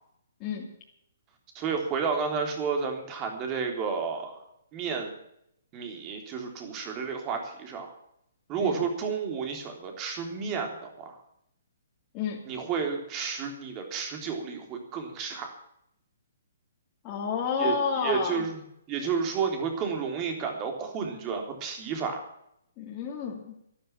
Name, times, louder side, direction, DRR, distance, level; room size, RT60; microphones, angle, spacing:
voice 1, 0.4-0.7 8.6-8.8 12.1-12.4 17.0-18.5 22.8-23.6, left 6 dB, 25° left, -2 dB, 2.7 m, -30 dB
voice 2, 1.5-4.4 4.7-5.1 5.7-7.9 8.5-11.2 12.5-15.5 17.6-17.8 18.0-18.6 18.9-22.2, right 6 dB, 25° right, 4 dB, 3.6 m, -31 dB
12.5 x 11.5 x 7.2 m, 0.76 s
hypercardioid pair, 155°, 0 cm